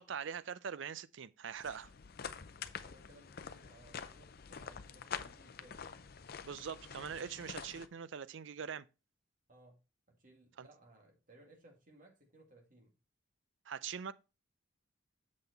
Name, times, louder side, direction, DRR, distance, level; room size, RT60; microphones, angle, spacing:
voice 1, 0.0-1.9 6.4-8.9 10.6-10.7 13.7-14.1, right 7 dB, 65° right, 0.4 m, -43 dB
sound 1, 1.5-7.9, left 6 dB, 50° left, 0.5 m, -47 dB
voice 2, 2.8-5.9 9.5-9.8 10.1-12.9, right 1 dB, 40° right, 2.2 m, -62 dB
7.4 x 5.8 x 4.0 m
head